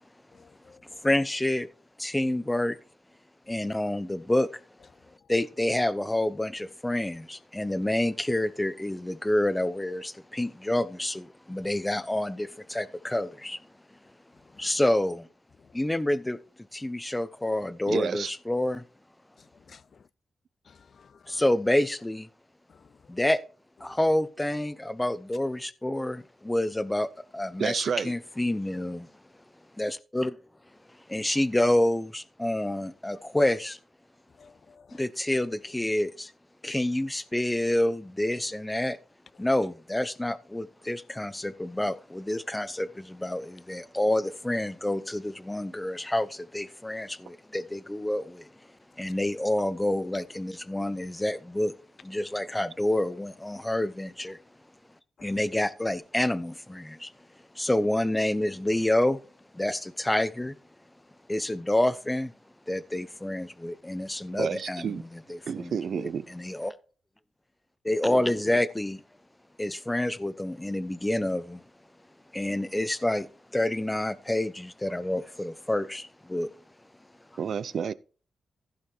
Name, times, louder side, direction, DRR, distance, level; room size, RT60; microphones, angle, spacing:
voice 1, 0.3-1.0 19.7-19.8 20.7-21.4 22.7-22.9 23.9-24.0 34.4-35.0 55.2-55.3, left 5 dB, 50° left, 0.5 m, -55 dB
voice 2, 1.0-1.7 2.0-2.8 3.5-4.5 5.3-13.6 14.5-15.3 15.7-16.4 16.7-18.9 21.3-22.3 23.1-23.4 23.8-27.1 27.3-29.1 29.8-30.4 31.1-33.8 34.9-36.3 36.6-39.0 39.4-48.5 49.0-51.7 52.0-54.4 55.2-57.1 57.5-59.2 59.5-60.6 61.3-62.3 62.7-66.7 67.8-69.0 69.6-71.7 72.3-76.5 77.3-77.4, left 1 dB, 10° left, 0.7 m, -28 dB
voice 3, 17.9-18.3 27.6-28.1 64.4-65.0 65.5-66.3 77.4-77.9, right 7 dB, 65° right, 0.6 m, -30 dB
15.5 x 5.1 x 4.4 m
wide cardioid pair, 120°, 0 cm